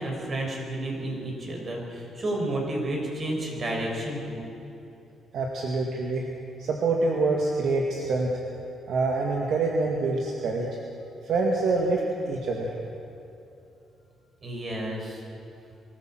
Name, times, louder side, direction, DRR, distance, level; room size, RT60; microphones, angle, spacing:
voice 1, 0.0-4.4 14.4-15.2, right 1 dB, 40° right, 0 dB, 6.1 m, -31 dB
voice 2, 5.3-6.2 6.6-8.3 8.9-10.7 11.2-12.0 12.3-12.7, right 3 dB, 70° right, 0 dB, 2.1 m, -26 dB
23.0 x 15.0 x 7.8 m, 2.7 s
cardioid pair, 90°, 0 cm